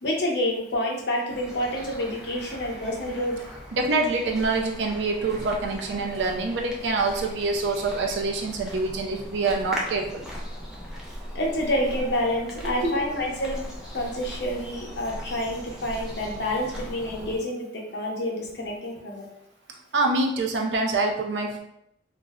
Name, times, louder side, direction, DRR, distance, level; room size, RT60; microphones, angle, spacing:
voice 1, 0.0-3.4 11.3-13.6 13.9-17.7 17.9-19.3, left 1 dB, 65° left, -1 dB, 0.7 m, -28 dB
sound 1, 1.3-17.4, equal, 5° right, 0.4 m, -39 dB
voice 2, 3.7-10.2 12.6-13.0 19.9-21.6, right 3 dB, 80° right, 2 dB, 0.5 m, -26 dB
2.4 x 2.1 x 3.5 m, 0.77 s
head